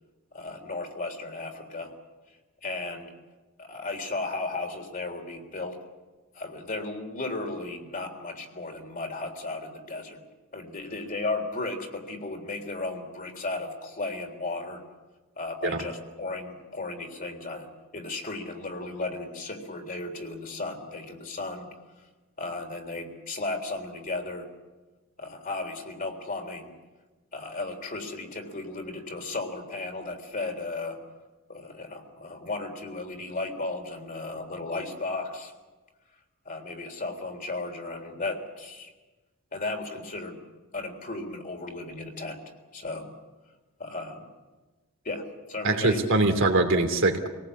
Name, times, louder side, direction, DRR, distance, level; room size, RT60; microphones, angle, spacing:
voice 1, 0.3-1.9 2.6-3.1 3.6-5.8 6.3-10.2 10.5-14.8 15.4-17.7 17.9-21.7 22.4-24.5 25.2-26.7 27.3-31.0 31.5-35.5 36.5-38.9 39.5-40.4 40.7-42.4 42.7-43.1 43.8-44.3 45.0-46.0 46.4-46.5, left 2 dB, 40° left, 3 dB, 3.7 m, -35 dB
voice 2, 45.6-47.3, right 2 dB, 60° right, 4 dB, 2.9 m, -23 dB
27.5 x 18.5 x 8.5 m, 1.2 s
head